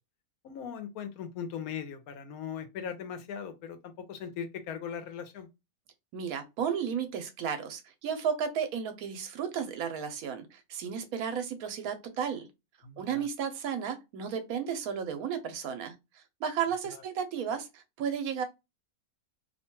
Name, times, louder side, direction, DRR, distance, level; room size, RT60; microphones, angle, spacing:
voice 1, 0.4-5.5 12.8-13.3 16.9-17.0, left 7 dB, 90° left, 1.1 m, -39 dB
voice 2, 6.1-12.5 13.0-18.4, right 7 dB, 80° right, 1.1 m, -33 dB
2.7 x 2.2 x 2.9 m
omnidirectional pair, 1.5 m